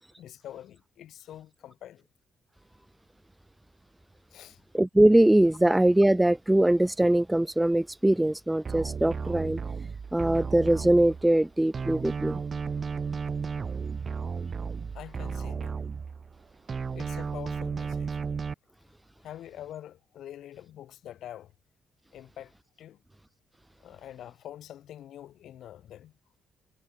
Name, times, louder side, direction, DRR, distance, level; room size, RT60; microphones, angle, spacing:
voice 1, 0.0-2.1 4.3-4.6 14.9-15.8 16.9-18.2 19.2-21.5 22.1-23.0 23.8-26.1, left 11 dB, 75° left, 5.4 m, -45 dB
voice 2, 4.7-9.6 10.1-12.4, right 1 dB, 10° right, 0.4 m, -22 dB
sound 1, 8.6-11.4 11.7-16.4 16.7-18.5, right 5 dB, 40° right, 2.2 m, -34 dB
cardioid pair, 90°, 0 cm